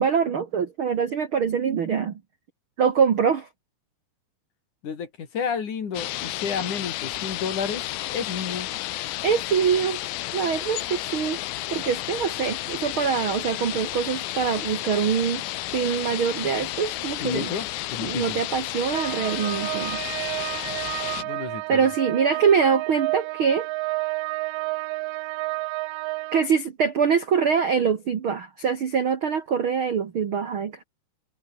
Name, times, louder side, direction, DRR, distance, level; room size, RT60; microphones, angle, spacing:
voice 1, 0.0-2.1 2.8-3.5 9.2-10.0 10.3-11.4 11.7-15.4 15.7-17.5 18.0-20.0 21.7-23.7 26.3-30.8, right 6 dB, 70° right, 1.2 m, -24 dB
voice 2, 4.8-7.8 8.1-8.7 17.2-18.4 21.2-21.8, left 6 dB, 50° left, 4.2 m, -31 dB
sound 1, 5.9-21.2, left 16 dB, 75° left, 2.5 m, -32 dB
sound 2, 18.9-26.4, right 23 dB, 90° right, 2.8 m, -31 dB
omnidirectional pair, 4.9 m